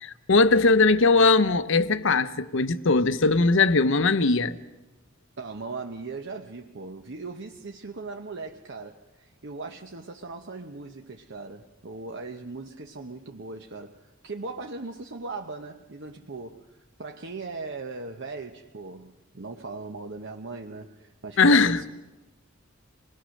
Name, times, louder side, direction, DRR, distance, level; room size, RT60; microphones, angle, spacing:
voice 1, 0.0-4.6 21.4-21.8, left 3 dB, 65° left, 0.9 m, -20 dB
voice 2, 5.4-21.8, right 3 dB, 60° right, 1.0 m, -39 dB
27.0 x 20.5 x 6.5 m
head